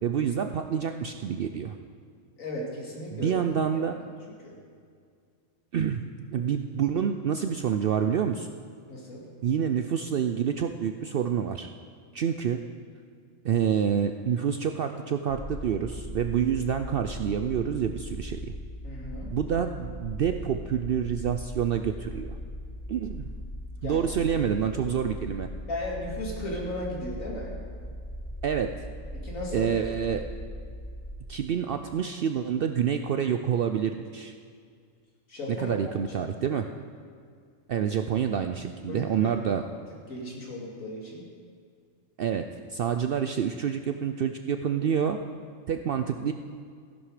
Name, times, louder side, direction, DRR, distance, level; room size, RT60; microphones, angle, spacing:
voice 1, 0.0-1.7 3.1-4.0 5.7-8.5 9.4-11.7 12.1-12.6 13.4-18.5 19.3-22.4 22.9-23.3 23.8-25.5 28.4-28.7 29.5-30.2 31.3-34.3 35.6-36.6 37.7-39.6 42.2-42.4 42.7-45.2 45.7-46.3, right 8 dB, 65° right, 7 dB, 0.5 m, -27 dB
voice 2, 2.4-3.4 4.4-4.5 8.9-9.3 18.8-19.3 23.8-24.1 25.7-27.5 29.1-29.8 35.3-35.7 36.5-36.6 38.9-39.3 39.6-39.7 40.1-41.3, left 1 dB, 80° left, -3 dB, 2.8 m, -36 dB
sound 1, 15.3-31.1, equal, 20° left, 1.6 m, -39 dB
15.0 x 10.5 x 4.9 m, 2.2 s
omnidirectional pair, 1.4 m